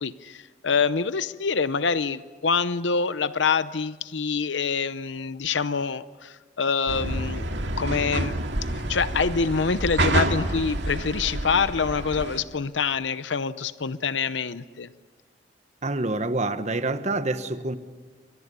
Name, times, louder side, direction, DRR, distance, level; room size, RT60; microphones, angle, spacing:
voice 1, 0.0-7.5 7.8-8.3 8.9-14.9, left 5 dB, 75° left, 0.7 m, -26 dB
sound 1, 6.9-12.4, right 1 dB, 70° right, 2.3 m, -28 dB
voice 2, 15.8-17.8, right 2 dB, 40° right, 1.2 m, -27 dB
30.0 x 25.0 x 6.9 m
head